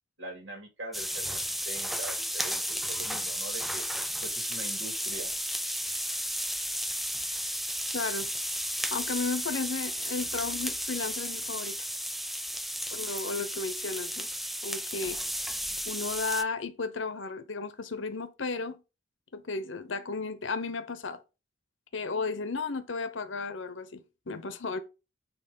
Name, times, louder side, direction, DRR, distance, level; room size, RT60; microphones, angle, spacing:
voice 1, 0.2-3.9 4.2-5.3, right 1 dB, 70° right, 2.6 m, -43 dB
sound 1, 0.9-16.4, equal, ahead, 0.3 m, -33 dB
voice 2, 7.9-8.3 8.9-11.8 12.9-14.3 14.6-15.2 15.9-18.8 19.3-21.2 21.9-24.8, left 4 dB, 75° left, 1.0 m, -34 dB
9.0 x 3.1 x 5.4 m
head